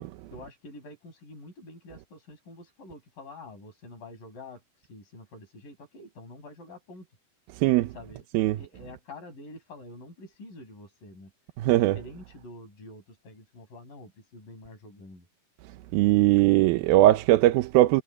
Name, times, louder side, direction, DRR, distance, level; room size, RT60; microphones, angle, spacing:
voice 1, 0.3-7.1 7.9-8.2 8.5-11.3 11.7-15.3, left 2 dB, 60° left, 9.7 m, -47 dB
voice 2, 7.6-7.9 8.3-8.6 11.6-12.0 15.9-18.0, right 16 dB, 80° right, 2.5 m, -20 dB
omnidirectional pair, 4.4 m